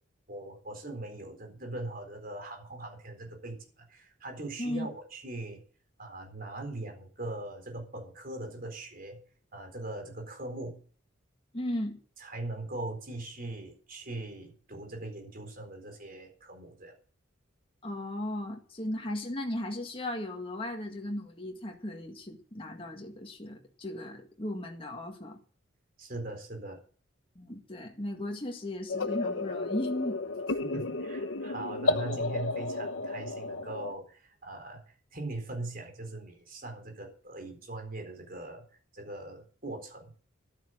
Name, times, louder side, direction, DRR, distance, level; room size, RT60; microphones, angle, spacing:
voice 1, 0.3-5.6 6.0-9.2 9.5-10.8 12.2-17.0 26.0-26.8 30.6-38.7 38.9-40.1, right 2 dB, 45° right, 4.2 m, -40 dB
voice 2, 11.5-12.0 17.8-25.4 27.4-30.2, left 1 dB, 25° left, 1.9 m, -36 dB
sound 1, 28.9-33.9, left 2 dB, 70° left, 1.0 m, -32 dB
12.5 x 9.0 x 6.5 m
head